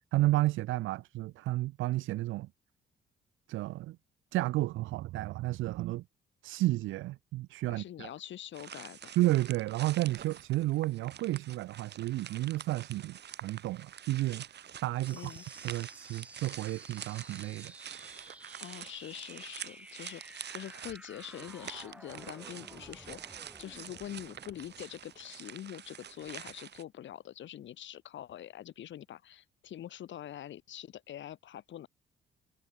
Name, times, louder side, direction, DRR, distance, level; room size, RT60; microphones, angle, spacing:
voice 1, 0.1-2.5 3.5-4.0 4.3-6.0 6.4-8.1 9.2-15.3 15.6-17.7 18.3-18.4, right 17 dB, 85° right, 0.5 m, -32 dB
voice 2, 7.7-9.1 15.1-15.4 18.6-31.9, left 11 dB, 70° left, 2.2 m, -45 dB
sound 1, 8.5-26.8, right 9 dB, 60° right, 2.2 m, -47 dB
sound 2, 15.0-26.1, right 1 dB, 5° right, 2.7 m, -53 dB
cardioid pair, 90°, 20 cm